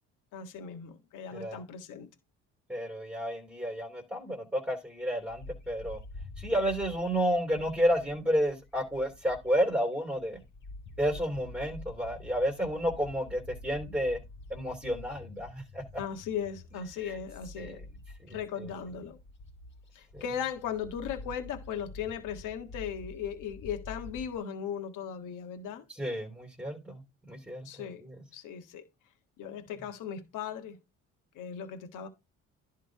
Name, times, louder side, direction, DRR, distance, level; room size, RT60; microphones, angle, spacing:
voice 1, 0.3-2.1 16.0-17.8 18.3-19.2 19.9-25.8 27.6-28.0 28.3-28.8 29.4-30.8 31.3-32.1, left 8 dB, 80° left, 1.6 m, -37 dB
voice 2, 1.3-1.6 2.7-6.0 6.4-10.4 11.0-14.2 14.5-16.0 17.6-17.8 18.2-18.7 20.1-20.2 26.0-28.1, equal, 5° right, 3.1 m, -31 dB
Bird, 5.3-9.8 10.2-24.4, left 2 dB, 40° left, 2.9 m, -48 dB
11.0 x 3.8 x 4.6 m
cardioid pair, 95°, 31 cm